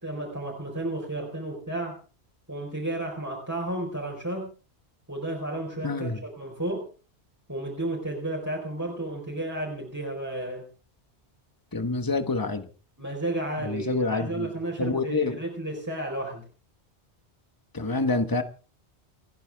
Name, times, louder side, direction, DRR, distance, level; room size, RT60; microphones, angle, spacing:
voice 1, 0.0-1.9 2.5-4.5 5.1-6.9 7.5-10.7 13.0-16.4, right 1 dB, 15° right, -2 dB, 4.6 m, -32 dB
voice 2, 5.8-6.2 11.7-12.7 13.6-14.5 14.8-15.4 17.7-18.4, left 3 dB, 20° left, 9 dB, 1.3 m, -27 dB
30.0 x 10.0 x 3.6 m, 0.37 s
omnidirectional pair, 1.1 m